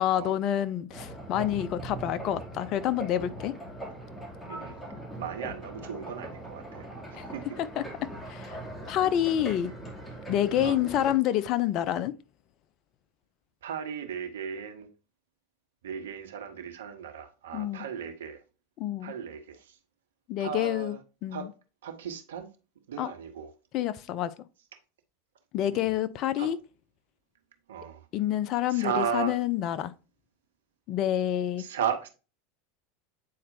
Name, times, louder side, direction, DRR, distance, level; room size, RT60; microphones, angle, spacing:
voice 1, 0.0-3.5 7.1-7.3 7.6-7.8 8.3-8.6 8.9-9.7 10.3-12.1 17.5-17.8 18.8-19.1 20.3-21.0 21.2-21.5 23.0-23.1 23.7-24.3 25.5-26.6 28.1-29.9 30.9-31.6, left 11 dB, 50° left, 0.6 m, -28 dB
sound 1, 0.9-11.1, right 1 dB, 10° left, 2.7 m, -41 dB
voice 2, 4.5-4.8 5.2-7.6 10.6-10.8 13.6-14.9 15.8-18.4 19.0-19.8 20.4-21.0 21.3-21.5 21.8-22.5 22.9-23.5 25.7-26.0 26.4-26.5 27.7-28.1 28.7-29.4 31.6-32.1, right 7 dB, 75° right, 1.2 m, -35 dB
8.5 x 4.3 x 2.7 m
hypercardioid pair, 85°, 0 cm